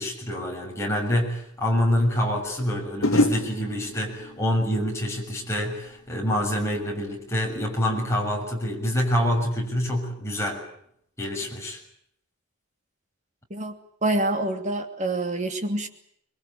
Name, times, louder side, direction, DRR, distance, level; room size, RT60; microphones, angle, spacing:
voice 1, 0.0-10.7 11.2-11.8, equal, 15° left, -1 dB, 6.7 m, -26 dB
sound 1, 1.6-1.7 3.0-6.1 6.4-6.9, left 1 dB, 70° left, 2.3 m, -29 dB
voice 2, 14.0-15.9, right 2 dB, 35° right, 6 dB, 2.8 m, -26 dB
25.5 x 22.0 x 8.6 m, 0.71 s
head